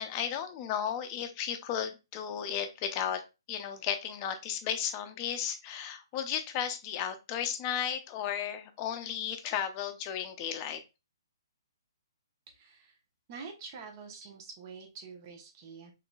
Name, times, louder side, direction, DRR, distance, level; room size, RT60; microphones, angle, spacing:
voice 1, 0.0-3.2 3.5-10.8, left 9 dB, 30° left, 6 dB, 0.6 m, -34 dB
voice 2, 12.5-12.9 13.3-15.9, right 5 dB, 35° right, 2 dB, 0.9 m, -46 dB
3.7 x 3.2 x 2.3 m, 0.27 s
hypercardioid pair, 145°, 2 cm